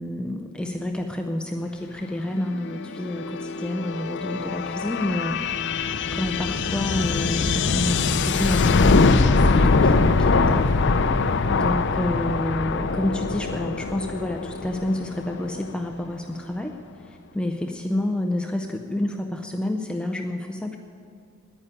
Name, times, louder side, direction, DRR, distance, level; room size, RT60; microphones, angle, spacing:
voice 1, 0.0-10.8 11.5-16.7 17.0-20.8, left 1 dB, 5° left, 3 dB, 0.5 m, -29 dB
sound 1, 2.4-15.9, left 4 dB, 55° left, 0.5 m, -23 dB
9.9 x 9.5 x 9.9 m, 2.2 s
head